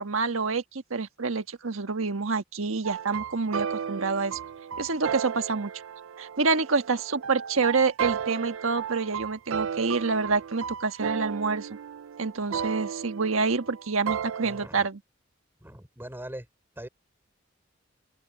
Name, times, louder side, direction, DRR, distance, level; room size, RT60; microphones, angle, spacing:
voice 1, 0.0-4.4 4.8-5.7 6.2-11.7 12.2-15.0, right 4 dB, 90° right, 1.4 m, -27 dB
sound 1, 2.8-14.7, right 7 dB, 70° right, 0.4 m, -34 dB
voice 2, 14.4-14.9 15.6-16.5 16.8-16.9, right 1 dB, 10° right, 3.6 m, -41 dB
open air
head